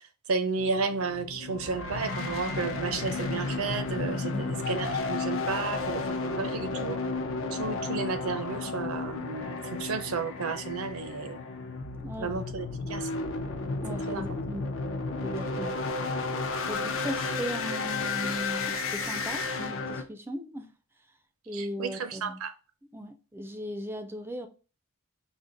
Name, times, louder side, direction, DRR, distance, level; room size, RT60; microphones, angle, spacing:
voice 1, 0.3-7.0 7.5-11.4 12.2-13.2 14.1-14.3 16.8-16.9 21.5-22.5, right 4 dB, 70° right, 0.5 m, -32 dB
sound 1, 0.6-20.0, left 3 dB, 65° left, 0.6 m, -33 dB
voice 2, 12.0-12.3 13.8-14.7 15.2-15.8 16.7-20.7 21.5-22.4 22.9-24.5, equal, 10° right, 0.3 m, -37 dB
5.0 x 2.1 x 3.8 m
head